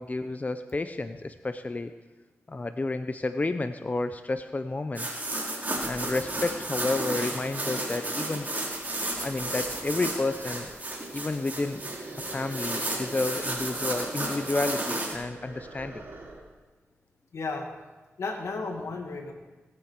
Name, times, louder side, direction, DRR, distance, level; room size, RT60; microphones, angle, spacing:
voice 1, 0.0-1.9 2.5-5.2 5.8-8.5 9.1-10.7 11.1-11.8 12.1-16.0, left 2 dB, 30° left, 9 dB, 0.6 m, -31 dB
sound 1, 4.9-15.1, right 2 dB, 35° right, 3.9 m, -33 dB
sound 2, 5.3-5.4 5.7-16.5, right 2 dB, 50° right, 4.0 m, -44 dB
voice 2, 17.3-17.7 18.2-19.3, left 3 dB, 80° left, 3 dB, 2.0 m, -34 dB
19.5 x 8.7 x 4.6 m, 1.2 s
cardioid pair, 50°, 5 cm